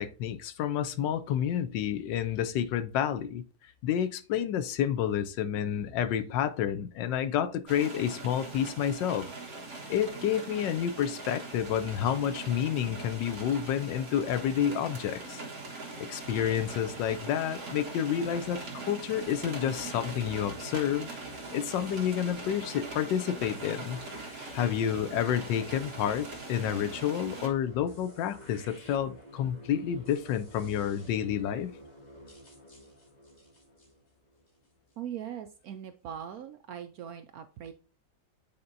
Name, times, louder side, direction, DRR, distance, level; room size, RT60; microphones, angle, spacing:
voice 1, 0.0-3.4 3.8-9.3 9.9-15.4 16.0-21.1 21.5-24.0 24.5-31.7, left 9 dB, 80° left, 1.3 m, -29 dB
sound 1, 7.7-27.5, right 3 dB, 55° right, 1.9 m, -42 dB
sound 2, 19.1-35.0, equal, 25° left, 1.5 m, -51 dB
voice 2, 35.0-37.7, right 9 dB, 75° right, 0.8 m, -40 dB
8.5 x 4.3 x 2.6 m
omnidirectional pair, 2.0 m